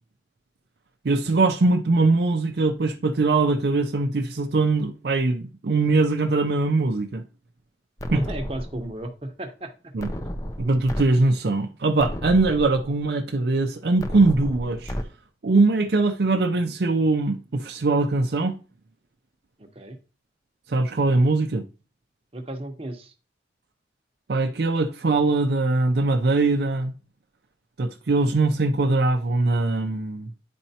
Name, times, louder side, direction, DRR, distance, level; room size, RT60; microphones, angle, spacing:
voice 1, 1.0-7.2 8.1-8.2 9.9-10.1 10.6-14.9 15.4-18.6 20.7-21.7 24.3-26.9 27.8-30.3, right 3 dB, 65° right, 0.5 m, -22 dB
sound 1, 8.0-9.0 10.0-11.0 11.5-11.6 12.0-13.0 14.0-15.0, equal, 20° left, 0.5 m, -33 dB
voice 2, 8.1-9.9 19.6-20.0 22.3-23.1, right 1 dB, 30° right, 0.9 m, -34 dB
10.0 x 4.3 x 2.8 m
head